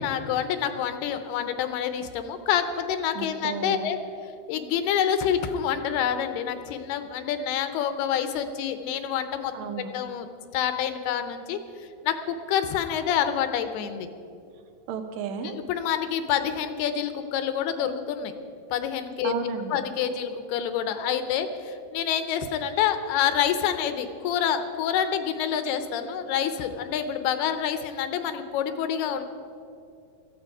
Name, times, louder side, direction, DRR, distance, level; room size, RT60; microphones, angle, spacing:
voice 1, 0.0-4.0 4.5-9.5 9.9-10.3 10.5-11.6 12.0-14.1 15.4-18.3 18.7-19.3 19.7-29.2, left 9 dB, 80° left, 9 dB, 2.8 m, -27 dB
voice 2, 3.2-3.8 9.5-9.9 14.9-15.6 19.2-19.8, right 6 dB, 70° right, 7 dB, 2.6 m, -33 dB
17.5 x 14.5 x 4.8 m, 2.5 s
omnidirectional pair, 4.7 m